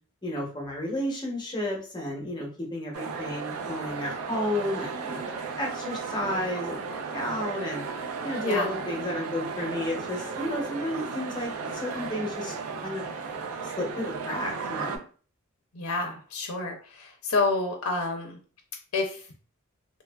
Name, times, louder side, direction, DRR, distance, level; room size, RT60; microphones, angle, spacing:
voice 1, 0.2-5.2 5.6-7.8 8.2-12.5 12.8-13.0 13.6-15.0, left 1 dB, 20° left, -2 dB, 0.7 m, -32 dB
sound 1, 2.9-15.0, right 5 dB, 85° right, 0.4 m, -35 dB
voice 2, 15.7-18.4 18.9-19.3, left 3 dB, 80° left, 2 dB, 0.5 m, -29 dB
2.8 x 2.3 x 2.2 m, 0.40 s
head